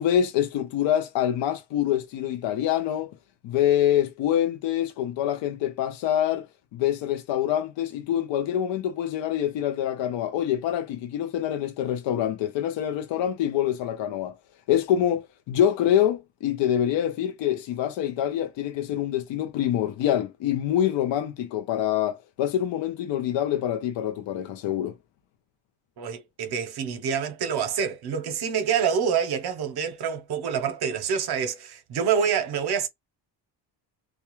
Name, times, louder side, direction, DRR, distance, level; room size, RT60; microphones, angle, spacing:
voice 1, 0.0-3.1 3.4-14.4 14.7-25.0, left 10 dB, 70° left, 0.5 m, -25 dB
voice 2, 26.0-32.9, right 7 dB, 55° right, 0.7 m, -27 dB
2.3 x 2.2 x 2.9 m
cardioid pair, 110°, 46 cm